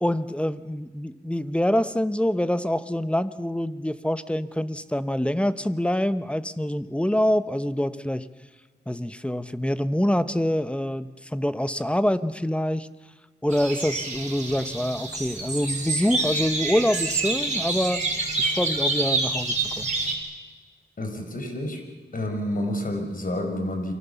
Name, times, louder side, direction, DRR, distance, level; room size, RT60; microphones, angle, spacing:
voice 1, 0.0-8.3 8.9-12.9 13.4-18.0 18.4-19.9, equal, 5° left, 12 dB, 1.1 m, -25 dB
sound 1, 13.5-20.1, right 3 dB, 40° right, 4.9 m, -27 dB
voice 2, 21.0-21.8 22.1-23.9, left 1 dB, 50° left, 4 dB, 6.0 m, -29 dB
29.0 x 24.5 x 7.1 m, 1.4 s
wide cardioid pair, 90°, 18 cm